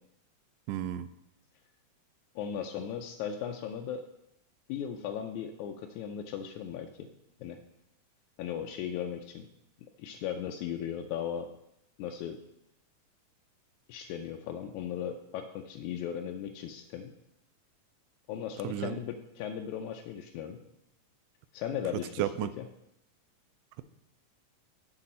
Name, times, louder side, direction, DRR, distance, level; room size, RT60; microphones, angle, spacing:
voice 1, 0.7-1.1 18.6-19.0 22.2-22.5, right 12 dB, 85° right, 13 dB, 2.1 m, -32 dB
voice 2, 2.4-4.0 4.7-7.1 7.4-7.6 8.4-9.5 10.0-11.5 12.0-12.4 13.9-17.1 18.3-20.6 21.5-22.3 22.6-22.7, left 9 dB, 80° left, 3 dB, 1.8 m, -37 dB
8.1 x 7.3 x 4.2 m, 0.81 s
omnidirectional pair, 3.8 m